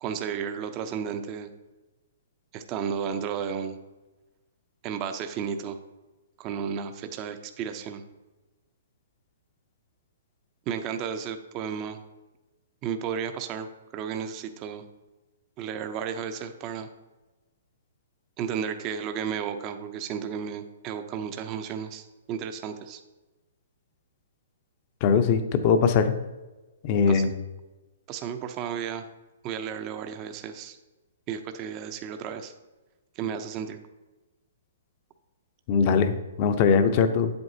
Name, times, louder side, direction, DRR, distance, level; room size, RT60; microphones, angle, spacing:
voice 1, 0.0-1.5 2.5-3.8 4.8-5.8 6.4-8.0 10.7-12.0 12.8-14.8 15.6-16.9 18.4-23.0 27.1-27.2 28.1-29.0 29.4-30.8 31.3-32.5 33.2-33.8, right 7 dB, 30° right, 8 dB, 0.6 m, -33 dB
voice 2, 25.0-26.1 26.8-27.3 35.7-37.3, left 6 dB, 40° left, 9 dB, 0.7 m, -21 dB
8.6 x 7.9 x 2.8 m, 1.1 s
hypercardioid pair, 145°, 0 cm